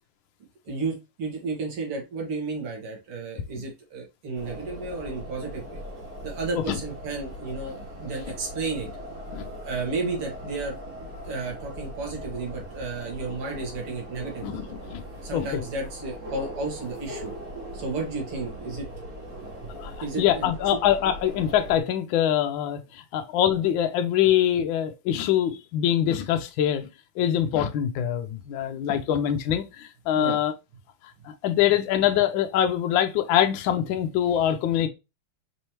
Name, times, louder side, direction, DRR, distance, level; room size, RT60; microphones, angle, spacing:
voice 1, 0.7-5.8 6.2-8.9 9.6-14.6 15.2-17.3 17.7-18.9 20.0-20.8 30.2-30.4, right 3 dB, 85° right, 2.6 m, -32 dB
sound 1, 4.3-21.8, equal, 45° right, 1.6 m, -40 dB
voice 2, 14.4-15.0 15.3-15.5 19.7-26.9 27.2-30.5 31.2-34.9, left 10 dB, 75° left, 1.3 m, -24 dB
5.3 x 3.2 x 2.8 m
omnidirectional pair, 2.4 m